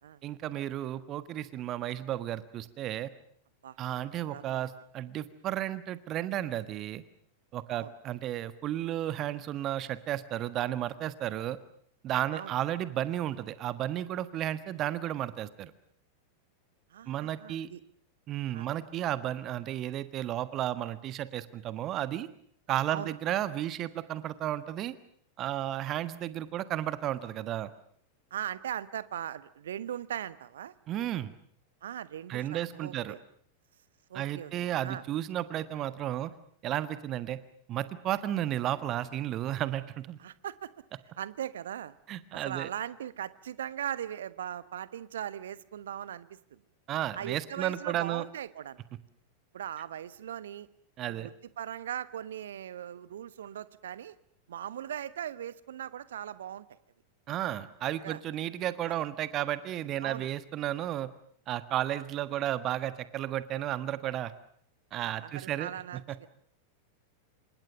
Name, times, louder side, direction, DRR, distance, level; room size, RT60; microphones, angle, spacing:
voice 1, 0.2-3.1 3.8-7.0 7.5-11.6 12.0-15.7 17.1-17.7 18.3-22.3 22.7-24.9 25.4-27.7 30.9-31.3 32.3-33.1 34.1-36.3 36.6-37.4 37.7-40.2 42.1-42.7 46.9-48.2 51.0-51.3 57.3-61.1 61.5-64.3 64.9-65.7, right 12 dB, 35° right, 14 dB, 1.4 m, -33 dB
voice 2, 3.6-4.7 7.7-7.9 12.3-12.5 16.9-17.8 18.5-18.7 22.9-23.1 28.3-31.1 31.8-33.2 34.1-35.0 40.2-40.7 41.2-42.0 42.4-46.6 47.2-48.8 49.5-50.7 51.1-54.1 54.5-56.8 58.0-58.2 58.9-59.1 60.0-60.3 65.2-66.3, right 10 dB, 60° right, 16 dB, 1.3 m, -39 dB
28.0 x 26.5 x 6.8 m, 0.63 s
figure-of-eight pair, 90°, 0 cm